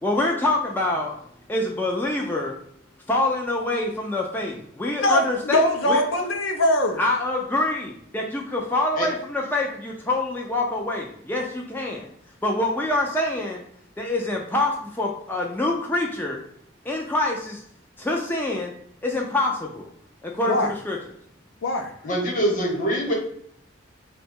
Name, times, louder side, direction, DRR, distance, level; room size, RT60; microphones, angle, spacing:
voice 1, 0.0-1.1 1.5-2.6 3.1-5.6 5.9-6.0 7.0-12.1 12.4-13.6 14.0-16.4 16.9-17.6 18.0-18.7 19.0-19.9 20.2-21.0, left 2 dB, 10° left, -1 dB, 0.3 m, -25 dB
voice 2, 5.0-7.0 20.5-20.7 21.6-21.9, left 1 dB, 70° left, 4 dB, 0.5 m, -22 dB
voice 3, 22.0-23.1, equal, 40° left, 0 dB, 1.0 m, -24 dB
3.7 x 2.2 x 4.2 m, 0.68 s
head